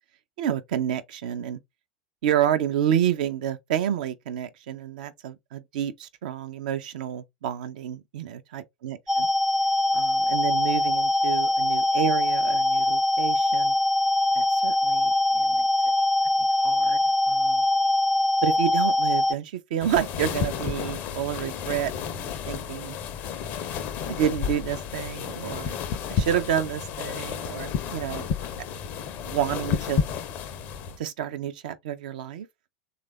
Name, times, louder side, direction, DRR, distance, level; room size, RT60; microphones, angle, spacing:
voice 1, 0.4-1.6 2.2-9.3 9.9-13.7 14.3-15.6 16.6-17.0 17.3-17.7 18.4-23.0 24.1-25.7 26.1-28.3 29.2-30.0 31.0-32.5, right 10 dB, 60° right, 0.5 m, -29 dB
sound 1, 9.1-19.3, left 2 dB, ahead, 0.4 m, -23 dB
sound 2, 19.8-31.0, left 7 dB, 40° left, 0.6 m, -31 dB
3.3 x 2.4 x 3.1 m
figure-of-eight pair, 85°, 5 cm